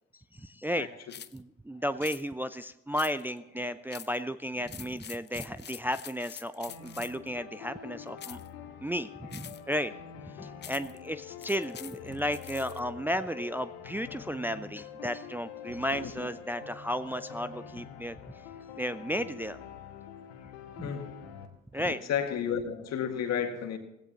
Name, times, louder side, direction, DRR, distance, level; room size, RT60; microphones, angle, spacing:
voice 1, 0.3-0.9 1.3-8.4 8.8-9.9 10.4-18.2 18.8-19.6 20.8-20.9 21.7-22.0, equal, 5° right, 11 dB, 0.5 m, -34 dB
Shaker heavy, 1.1-1.4 2.0-2.2 2.9-3.4 3.9-4.2 4.6-7.3 8.2-8.5 9.3-9.7 10.6-11.0 11.4-12.8, left 9 dB, 35° left, 0.6 m, -46 dB
sound 1, 6.7-21.5, left 8 dB, 80° left, 1.3 m, -46 dB
voice 2, 15.6-16.3 20.8-21.1 21.7-23.8, left 8 dB, 55° left, 6 dB, 1.9 m, -33 dB
17.5 x 16.0 x 2.9 m, 0.88 s
figure-of-eight pair, 45°, 31 cm